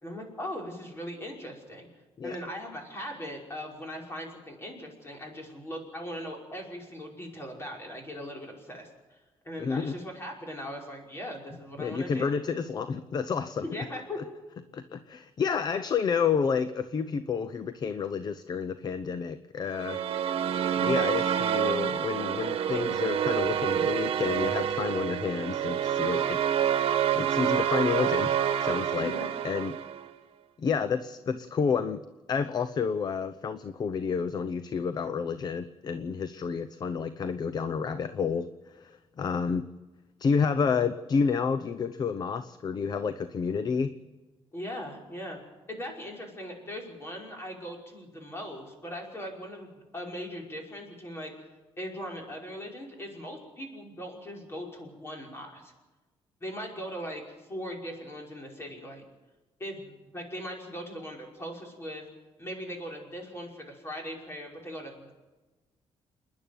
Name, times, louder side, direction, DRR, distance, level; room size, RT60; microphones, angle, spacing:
voice 1, 0.0-1.9 2.2-8.9 9.4-12.3 13.6-14.2 29.0-29.3 44.5-45.4 45.7-51.3 51.8-55.7 56.4-57.2 57.5-59.0 59.6-62.0 62.4-65.1, equal, 25° left, 0 dB, 5.5 m, -39 dB
voice 2, 9.6-9.9 11.8-13.6 14.7-20.0 20.8-26.4 27.1-29.1 29.4-29.8 30.6-32.0 32.3-39.7 40.2-43.9, left 6 dB, 40° left, 12 dB, 0.8 m, -30 dB
sound 1, 19.7-30.1, right 9 dB, 65° right, 1.3 m, -28 dB
28.5 x 10.5 x 9.3 m, 1.2 s
cardioid pair, 135°, 10 cm